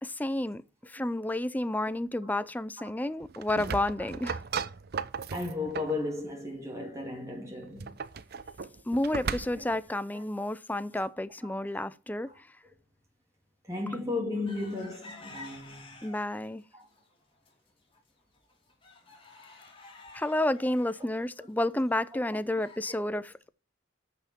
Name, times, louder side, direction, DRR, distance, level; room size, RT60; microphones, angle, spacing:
voice 1, 0.0-4.4 8.9-12.3 16.0-16.6 20.1-23.5, left 1 dB, 10° left, 0.5 m, -31 dB
sound 1, 3.2-6.0 7.6-9.8, right 5 dB, 55° right, 0.6 m, -36 dB
voice 2, 4.0-4.3 5.3-8.0 9.5-9.6 10.1-10.2 11.4-11.5 12.2-12.4 12.6-12.7 13.6-16.0 16.7-16.9, left 2 dB, 15° right, 2.6 m, -35 dB
sound 2, 14.5-16.5 16.9-17.5 17.9-18.0 18.3-23.0, left 3 dB, 30° left, 2.7 m, -50 dB
15.0 x 5.8 x 4.4 m
head